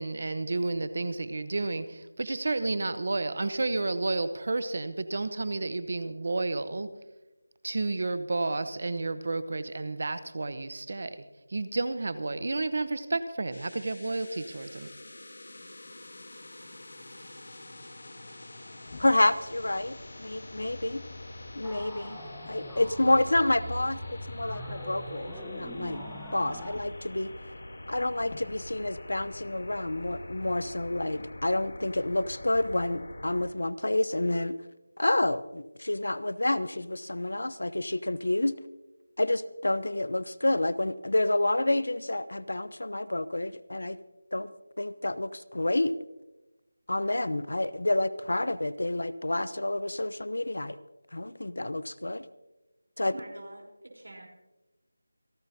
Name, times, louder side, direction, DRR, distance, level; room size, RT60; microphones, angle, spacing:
voice 1, 0.0-6.9 7.6-14.9, right 2 dB, 40° right, 13 dB, 0.9 m, -31 dB
sound 1, 13.5-33.5, left 1 dB, 60° left, 3.0 m, -45 dB
Motor vehicle (road), 18.9-22.3 23.6-27.1 28.2-31.5 32.5-32.9, left 3 dB, 40° left, 1.9 m, -51 dB
voice 2, 19.0-21.0 21.5-22.2 22.5-26.0 26.3-27.3 27.9-34.6 35.0-38.6 39.2-44.0 44.3-44.5 44.8-45.9 46.9-50.8 51.1-52.3 53.0-53.1, left 1 dB, 80° left, 16 dB, 0.8 m, -29 dB
sound 2, 21.6-26.8, equal, ahead, 1.1 m, -42 dB
voice 3, 53.0-54.3, right 1 dB, 90° right, 0 dB, 4.0 m, -46 dB
27.5 x 13.0 x 2.8 m, 1.0 s
figure-of-eight pair, 175°, 0 cm